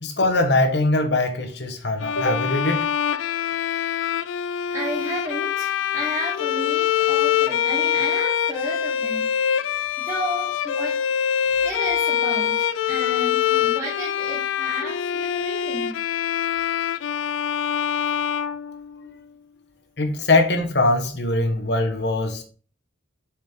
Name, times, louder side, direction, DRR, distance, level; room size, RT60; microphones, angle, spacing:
voice 1, 0.0-2.9 20.0-22.4, left 2 dB, 60° left, 1.1 m, -21 dB
Bowed string instrument, 2.0-19.2, left 9 dB, 85° left, 0.4 m, -24 dB
voice 2, 4.7-9.6 10.0-11.0 11.6-16.0 19.0-19.1, equal, 15° right, 1.1 m, -33 dB
7.1 x 4.5 x 3.6 m
head